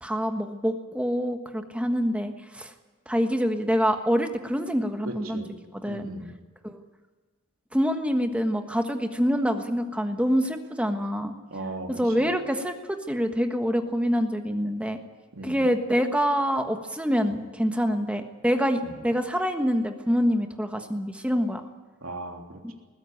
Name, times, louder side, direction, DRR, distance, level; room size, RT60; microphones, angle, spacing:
voice 1, 0.0-2.7 3.1-5.4 5.7-6.1 6.6-6.8 7.7-11.3 11.9-12.8 13.1-15.0 15.4-21.6, equal, 5° right, 6 dB, 1.3 m, -26 dB
voice 2, 5.0-5.5 5.8-6.3 11.5-12.3 15.3-15.7 18.8-18.9 22.0-22.7, right 2 dB, 70° right, 2 dB, 3.3 m, -37 dB
21.0 x 15.5 x 9.3 m, 1.4 s
head